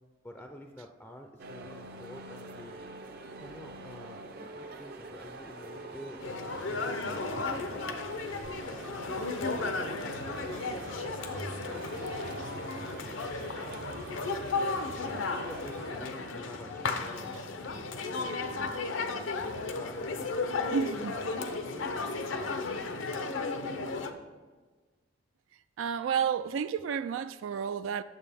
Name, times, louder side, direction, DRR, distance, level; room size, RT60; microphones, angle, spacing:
voice 1, 0.2-2.8 3.4-9.0 9.4-11.3 11.7-14.3 15.0-18.9 19.4-24.0, left 1 dB, 5° left, 0.4 m, -49 dB
sound 1, 1.4-16.0, right 2 dB, 55° right, 0.6 m, -45 dB
sound 2, 6.2-24.1, left 3 dB, 80° left, 0.6 m, -34 dB
voice 2, 20.7-21.2 25.8-28.0, right 7 dB, 85° right, 0.3 m, -31 dB
8.8 x 7.3 x 3.4 m
head